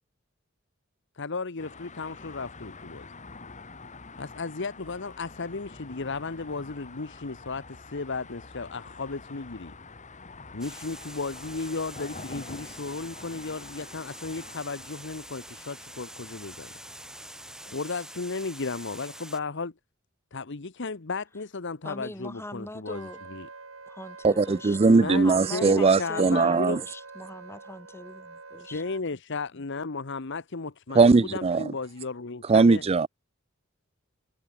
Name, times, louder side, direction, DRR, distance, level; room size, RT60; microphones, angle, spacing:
voice 1, 1.2-3.1 4.2-9.7 10.5-16.7 17.6-19.7 20.3-23.5 24.8-26.8 28.6-32.8, left 4 dB, 60° left, 1.1 m, -34 dB
sound 1, 1.6-17.7, left 3 dB, 35° left, 2.5 m, -47 dB
Water, 10.6-19.4, right 1 dB, 5° right, 3.2 m, -45 dB
voice 2, 21.8-23.2 23.9-24.8 25.1-28.8, left 1 dB, 15° left, 4.0 m, -41 dB
Wind instrument woodwind instrument, 22.9-29.0, right 4 dB, 90° right, 3.5 m, -46 dB
voice 3, 24.2-26.8 30.9-31.6 32.5-33.1, right 4 dB, 30° right, 0.4 m, -20 dB
head